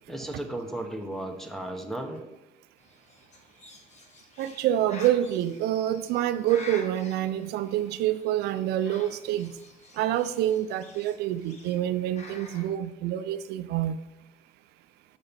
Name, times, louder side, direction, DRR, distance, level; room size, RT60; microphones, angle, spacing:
voice 1, 0.1-2.2, right 1 dB, ahead, 5 dB, 0.9 m, -35 dB
Bird, 2.8-12.7, left 2 dB, 40° left, 1.4 m, -48 dB
voice 2, 4.4-9.5 10.0-14.0, right 12 dB, 80° right, 12 dB, 0.4 m, -27 dB
6.9 x 5.0 x 4.1 m, 0.99 s
cardioid pair, 110°, 17 cm